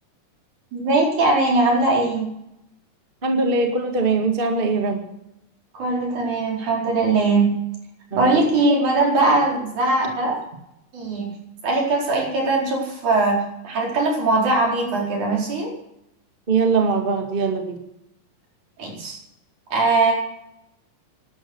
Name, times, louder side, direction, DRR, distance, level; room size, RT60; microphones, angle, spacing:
voice 1, 0.7-2.3 5.8-7.5 8.1-10.4 10.9-11.3 11.6-15.7 18.8-19.2 19.7-20.1, right 2 dB, 55° right, -2 dB, 5.9 m, -20 dB
voice 2, 3.2-5.0 8.1-8.4 16.5-17.8, right 4 dB, 25° right, 4 dB, 1.3 m, -21 dB
17.5 x 12.5 x 6.3 m, 0.83 s
omnidirectional pair, 4.1 m